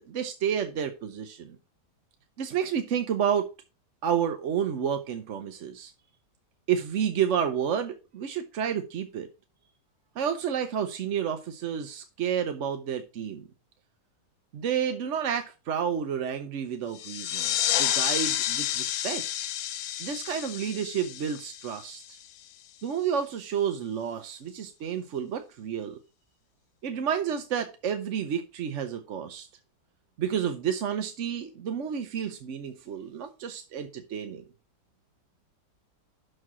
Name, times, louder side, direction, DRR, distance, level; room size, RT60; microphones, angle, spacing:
voice 1, 0.0-1.6 2.4-3.5 4.0-5.9 6.7-9.3 10.2-13.4 14.5-19.2 20.0-22.2 22.8-26.0 26.8-29.5 30.2-34.4, right 8 dB, 55° right, 7 dB, 0.9 m, -30 dB
sound 1, 16.9-22.3, left 12 dB, 70° left, 1.0 m, -30 dB
6.5 x 6.2 x 6.1 m, 0.32 s
omnidirectional pair, 1.8 m